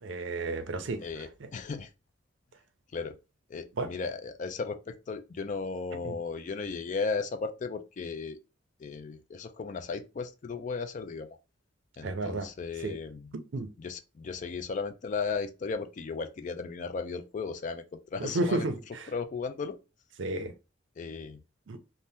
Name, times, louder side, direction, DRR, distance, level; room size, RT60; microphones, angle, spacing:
voice 1, 0.0-1.0 3.8-3.9 6.0-6.1 12.0-12.5 12.8-13.0 13.3-13.7 18.2-19.1 20.2-20.5 21.7-21.8, right 2 dB, 75° right, 0.5 m, -32 dB
voice 2, 1.0-1.9 2.9-3.2 3.5-8.4 8.8-11.4 12.0-13.3 13.8-17.8 18.1-18.7 19.1-19.8 21.0-21.4, left 4 dB, 40° left, 0.3 m, -35 dB
2.7 x 2.1 x 3.3 m
head